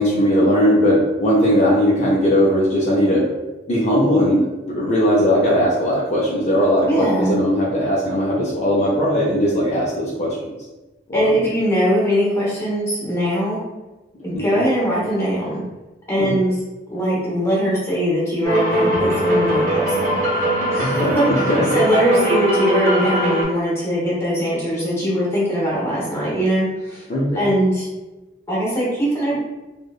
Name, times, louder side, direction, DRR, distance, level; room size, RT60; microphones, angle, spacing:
voice 1, 0.0-3.2 3.7-10.4 11.1-11.3 14.3-14.6 16.2-16.3 20.8-21.7 27.1-27.4, equal, 40° left, -6 dB, 0.4 m, -18 dB
voice 2, 6.9-7.4 11.1-13.6 14.2-15.6 16.1-16.6 16.9-20.0 20.3-20.4 20.7-27.0 27.3-27.9 28.5-29.4, equal, 15° left, -7 dB, 0.8 m, -21 dB
sound 1, 18.4-23.4, right 1 dB, 50° right, 0.7 m, -20 dB
2.7 x 2.0 x 2.3 m, 1.1 s
head